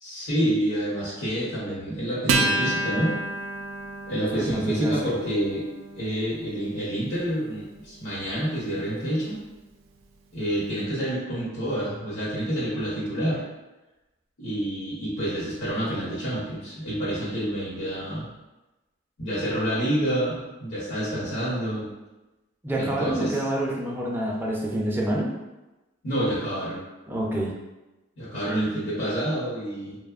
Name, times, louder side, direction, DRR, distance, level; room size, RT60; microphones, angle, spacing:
voice 1, 0.0-3.1 4.1-5.6 5.9-9.4 10.3-13.4 14.4-18.3 19.2-21.9 22.7-23.4 26.0-26.8 28.2-30.0, right 1 dB, 80° left, -8 dB, 0.8 m, -28 dB
Acoustic guitar, 2.3-9.1, right 2 dB, 85° right, 0.3 m, -31 dB
voice 2, 4.3-4.9 22.6-25.3 27.1-27.5, right 1 dB, 10° right, -3 dB, 0.3 m, -27 dB
2.8 x 2.0 x 2.3 m, 1.1 s
head